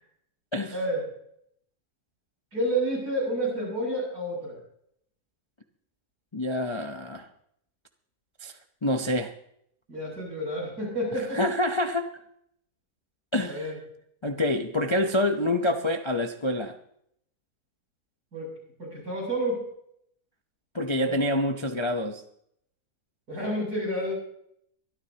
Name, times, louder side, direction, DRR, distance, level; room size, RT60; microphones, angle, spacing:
voice 1, 0.7-1.0 2.5-4.6 9.9-11.4 13.4-13.8 18.3-18.5 18.8-19.6 20.9-21.1 23.3-24.1, right 1 dB, 75° right, -3 dB, 8.2 m, -30 dB
voice 2, 6.3-7.3 8.4-8.5 8.8-9.3 11.3-12.1 13.3-13.7 14.2-16.8 20.7-22.2, left 1 dB, 30° left, 5 dB, 0.5 m, -27 dB
23.5 x 13.0 x 2.9 m, 0.71 s
omnidirectional pair, 1.7 m